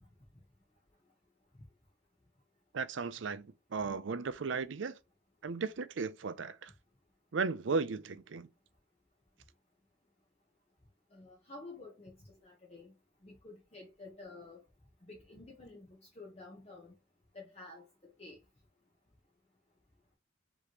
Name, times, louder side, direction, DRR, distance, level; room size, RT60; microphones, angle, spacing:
voice 1, 2.7-5.0 5.4-6.7 7.3-8.5, right 4 dB, 75° right, 0.5 m, -35 dB
voice 2, 11.1-12.1 12.4-12.9 13.2-14.6 15.1-15.9 16.2-16.9 17.3-17.8 18.2-18.4, left 2 dB, 30° left, 1.0 m, -50 dB
5.1 x 3.1 x 2.9 m
head